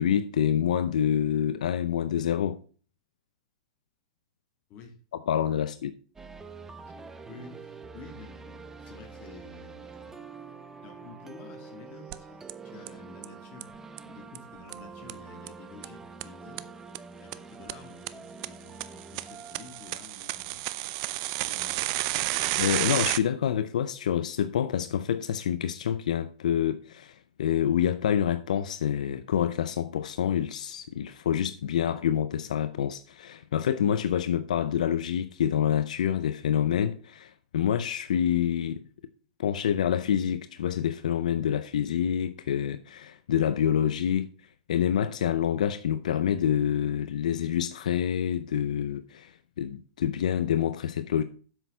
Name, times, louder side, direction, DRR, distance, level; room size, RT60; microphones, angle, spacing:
voice 1, 0.0-2.6 5.3-5.9 22.6-38.8 39.4-44.3 44.7-51.2, left 9 dB, 85° left, 0.6 m, -27 dB
sound 1, 6.2-21.0, right 4 dB, 10° right, 0.8 m, -46 dB
voice 2, 6.8-10.2 10.8-16.7 17.2-20.6 21.4-22.1, left 4 dB, 40° left, 2.6 m, -50 dB
sound 2, 12.1-12.2 12.5-12.6 12.9-13.0 13.2-13.3 13.6-13.7 14.0-14.1 14.4-14.5 14.7-14.8 15.1-15.2 15.5-15.6 15.8-15.9 16.2-16.3 16.6-16.7 16.9-17.0 17.3-17.4 17.7-17.8 18.1-18.2 18.4-18.5 18.8-23.2, right 18 dB, 50° right, 0.5 m, -30 dB
7.9 x 6.3 x 5.6 m
hypercardioid pair, 140°, 4 cm